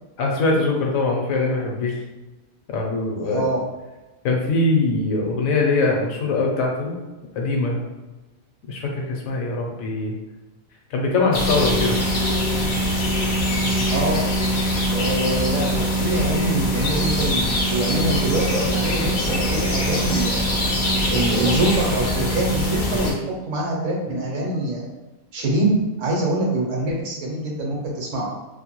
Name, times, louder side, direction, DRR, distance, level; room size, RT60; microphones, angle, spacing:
voice 1, 0.2-2.0 2.7-3.4 4.2-6.9 7.4-7.8 8.7-10.2 10.9-12.0, left 3 dB, 75° left, 0 dB, 1.0 m, -22 dB
voice 2, 3.2-3.6 13.9-14.2 14.9-20.7 21.1-23.2 23.5-24.9 25.3-28.2, right 1 dB, 65° right, -2 dB, 0.9 m, -24 dB
sound 1, 11.3-23.1, equal, 60° left, 0.6 m, -22 dB
2.6 x 2.2 x 2.9 m, 1.1 s
omnidirectional pair, 1.5 m